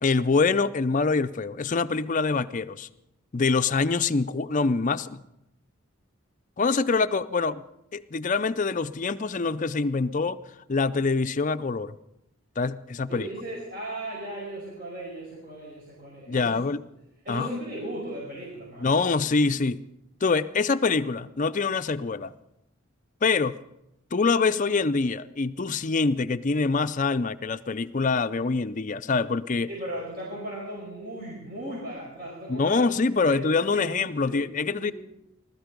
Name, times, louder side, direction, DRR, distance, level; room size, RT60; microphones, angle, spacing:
voice 1, 0.0-2.9 3.3-5.2 6.6-7.6 7.9-10.4 10.7-11.9 12.6-13.3 16.3-16.8 17.3-17.5 18.8-19.9 20.2-22.3 23.2-23.5 24.1-29.7 32.5-34.9, left 4 dB, 35° left, 11 dB, 0.5 m, -25 dB
voice 2, 13.1-16.5 17.3-18.9 29.7-32.9 33.3-33.4 33.7-34.9, right 1 dB, 45° right, -4 dB, 5.2 m, -37 dB
20.0 x 13.0 x 5.2 m, 0.86 s
head